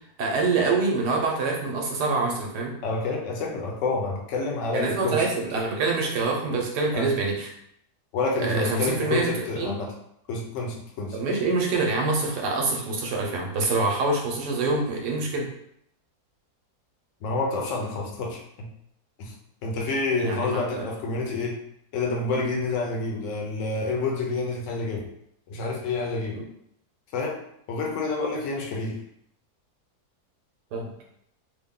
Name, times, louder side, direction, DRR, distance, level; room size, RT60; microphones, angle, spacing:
voice 1, 0.2-2.7 4.7-7.5 8.4-9.8 11.1-15.5 20.2-20.9 30.7-30.9, right 3 dB, 90° right, 0 dB, 1.4 m, -25 dB
voice 2, 2.8-5.3 6.9-7.1 8.1-9.9 10.3-11.2 17.2-18.7 19.2-19.3 19.6-21.6 21.9-25.1 25.5-26.4 27.1-27.4 27.7-29.0, left 3 dB, 60° left, 0 dB, 1.0 m, -28 dB
3.4 x 2.3 x 3.6 m, 0.71 s
omnidirectional pair, 1.7 m